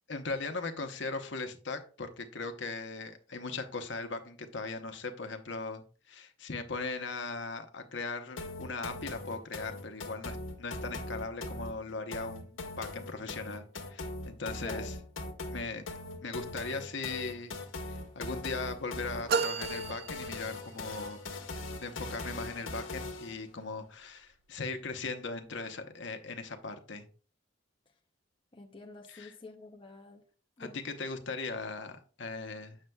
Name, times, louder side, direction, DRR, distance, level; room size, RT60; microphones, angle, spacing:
voice 1, 0.0-14.9 15.5-15.8 16.2-17.6 17.9-21.2 21.8-27.1 29.1-29.3 30.6-32.8, left 3 dB, 60° left, 0.9 m, -39 dB
sound 1, 8.4-23.4, left 2 dB, 85° left, 1.1 m, -41 dB
sound 2, 19.3-21.0, right 5 dB, 50° right, 0.4 m, -33 dB
voice 2, 28.5-30.2 30.6-30.8, left 3 dB, 25° left, 0.5 m, -48 dB
7.8 x 6.5 x 2.3 m
head